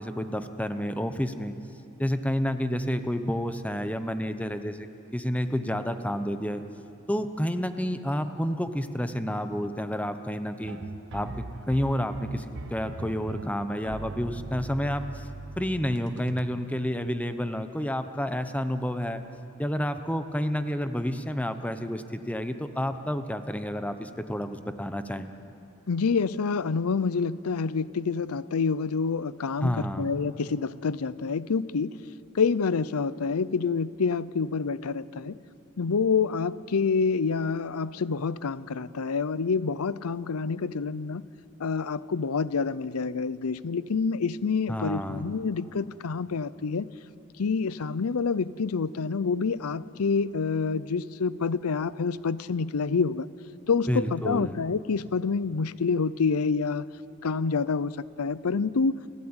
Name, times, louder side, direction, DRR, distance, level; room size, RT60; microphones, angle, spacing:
voice 1, 0.0-1.5 2.0-6.6 7.1-10.8 11.1-15.3 15.6-19.2 19.6-25.3 29.6-30.1 44.7-45.2 53.9-54.6, equal, 5° left, 9 dB, 0.9 m, -30 dB
sound 1, 10.6-16.4, right 2 dB, 55° right, 0.9 m, -40 dB
voice 2, 25.9-31.9 32.3-35.4 35.8-41.2 41.6-46.9 47.4-53.3 53.7-56.8 57.2-57.9 58.2-59.0, left 5 dB, 90° left, 18 dB, 0.6 m, -27 dB
29.0 x 13.5 x 8.9 m, 2.8 s
head